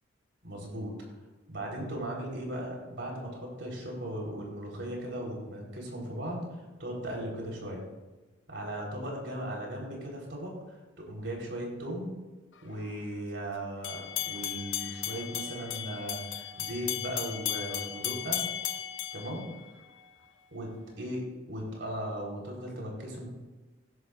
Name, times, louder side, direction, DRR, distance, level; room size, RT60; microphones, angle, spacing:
voice 1, 0.4-0.9 1.5-7.8 8.5-12.2 12.6-18.4 19.1-19.5 20.5-23.3, right 1 dB, 70° right, -2 dB, 4.3 m, -37 dB
sound 1, 13.8-20.1, left 11 dB, 80° left, 0.9 m, -36 dB
16.5 x 11.5 x 2.6 m, 1.2 s
head